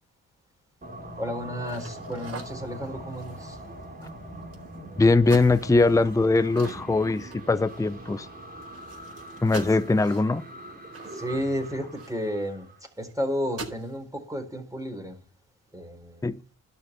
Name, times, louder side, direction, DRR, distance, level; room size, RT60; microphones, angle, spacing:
sound 1, 0.8-12.8, right 1 dB, 25° right, 3.6 m, -42 dB
voice 1, 1.2-3.6 9.7-9.8 11.1-15.2 15.7-16.3, equal, 10° right, 4.2 m, -32 dB
sound 2, 1.6-4.8 5.2-7.9 8.2-8.3 8.6-12.5 13.0-13.1 13.4-14.0, right 3 dB, 40° right, 4.6 m, -44 dB
voice 2, 5.0-8.3 9.4-10.4 16.2-16.4, left 3 dB, 10° left, 0.7 m, -21 dB
12.0 x 5.6 x 8.2 m
supercardioid pair, 55°, 36 cm